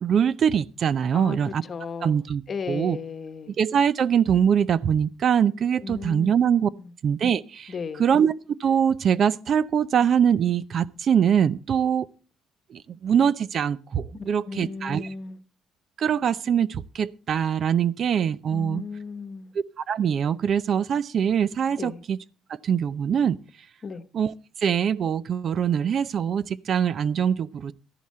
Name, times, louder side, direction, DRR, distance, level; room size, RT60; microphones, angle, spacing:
voice 1, 0.0-1.6 2.0-2.4 2.7-3.0 3.6-6.7 7.0-7.7 8.0-8.3 8.6-12.1 12.7-15.1 16.0-18.8 19.5-22.2 22.6-23.4 24.1-27.7, right 8 dB, 50° right, 0.6 m, -23 dB
voice 2, 1.1-2.2 2.5-3.6 5.8-6.3 6.8-6.9 7.7-8.0 14.1-15.4 18.5-19.5 21.8-22.0 23.8-24.0, left 5 dB, 40° left, 1.1 m, -35 dB
13.5 x 11.0 x 4.3 m
cardioid pair, 110°, 0 cm